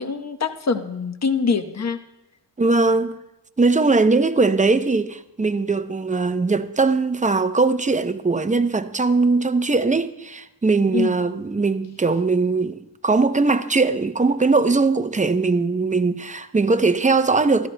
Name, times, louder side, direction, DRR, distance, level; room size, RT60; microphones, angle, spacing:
voice 1, 0.0-2.0 10.9-11.1, left 5 dB, 35° left, 1.0 m, -24 dB
voice 2, 2.6-3.2 3.6-17.7, right 3 dB, 15° right, 0.6 m, -20 dB
16.0 x 13.5 x 2.2 m
cardioid pair, 60°, 45 cm